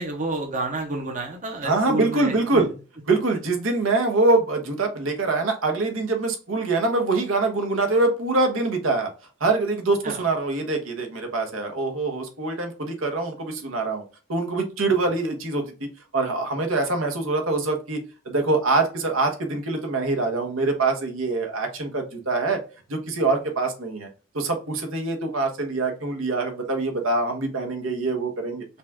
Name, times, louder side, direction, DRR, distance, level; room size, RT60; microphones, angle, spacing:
voice 1, 0.0-2.6 10.0-10.2, right 2 dB, 40° right, 2 dB, 0.8 m, -30 dB
voice 2, 1.6-2.7 3.1-9.1 9.4-14.0 14.3-22.6 22.9-24.1 24.3-28.7, right 3 dB, 75° right, 3 dB, 1.2 m, -24 dB
5.5 x 2.4 x 3.5 m, 0.34 s
head